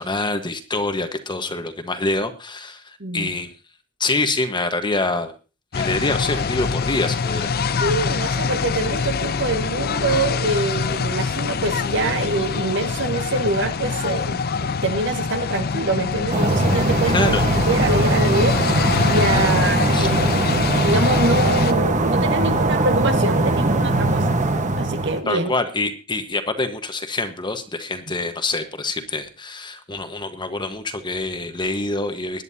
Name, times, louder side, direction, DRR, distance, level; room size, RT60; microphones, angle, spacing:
voice 1, 0.0-3.5 4.0-5.3 5.7-7.9 17.1-17.4 19.0-19.1 19.9-20.1 25.3-32.4, left 2 dB, 20° left, 7 dB, 1.3 m, -26 dB
voice 2, 3.0-3.3 7.8-17.4 17.7-18.6 19.0-24.3 24.7-25.5, right 2 dB, 60° right, 7 dB, 1.7 m, -25 dB
sound 1, 5.7-21.7, left 5 dB, 45° left, 0.5 m, -24 dB
sound 2, 16.3-25.2, right 2 dB, 35° right, 1.3 m, -20 dB
21.5 x 10.5 x 2.8 m, 0.32 s
head